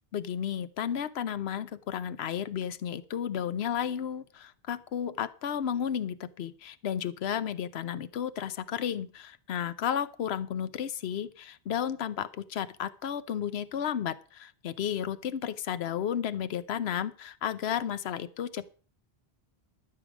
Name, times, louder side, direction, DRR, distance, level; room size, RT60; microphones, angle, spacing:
voice 1, 0.1-18.6, left 9 dB, 80° left, 14 dB, 1.0 m, -33 dB
13.5 x 6.9 x 6.1 m, 0.39 s
omnidirectional pair, 1.1 m